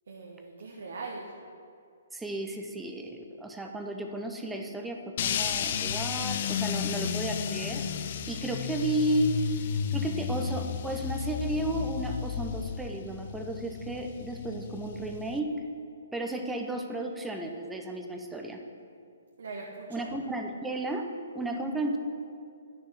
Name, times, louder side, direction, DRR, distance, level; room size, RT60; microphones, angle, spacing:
voice 1, 0.1-1.3 6.7-7.0 19.4-20.1 21.7-22.0, right 3 dB, 75° right, -1 dB, 1.2 m, -42 dB
voice 2, 2.1-7.8 8.3-9.4 9.9-15.6 16.1-18.6 19.9-21.1 21.3-22.0, right 1 dB, 5° right, 3 dB, 0.8 m, -33 dB
sound 1, 5.2-15.4, left 8 dB, 50° left, 0.5 m, -33 dB
9.8 x 6.7 x 5.8 m, 2.5 s
hypercardioid pair, 140°, 0 cm